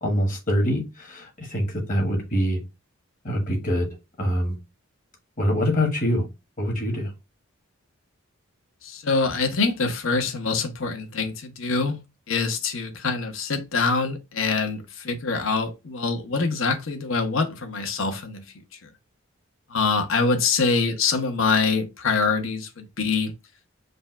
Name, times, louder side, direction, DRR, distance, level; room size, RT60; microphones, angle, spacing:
voice 1, 0.0-2.6 3.2-3.9 4.2-4.5 5.4-6.3 6.6-7.1, equal, 40° left, 1.4 m, -24 dB
voice 2, 8.8-12.0 12.3-18.4 19.7-23.3, left 4 dB, 70° left, 0.9 m, -24 dB
5.2 x 2.3 x 4.4 m
head